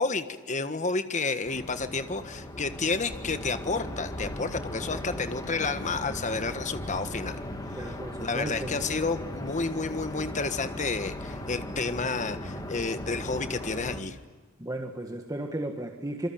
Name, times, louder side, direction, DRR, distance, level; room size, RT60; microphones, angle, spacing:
voice 1, 0.0-7.4 7.9-14.2, left 4 dB, 35° left, 10 dB, 1.5 m, -30 dB
sound 1, 1.4-14.0, left 1 dB, 20° left, 3.0 m, -38 dB
voice 2, 7.8-9.0 14.6-16.3, right 1 dB, 15° right, 3 dB, 1.7 m, -35 dB
27.0 x 24.0 x 8.9 m, 1.3 s
head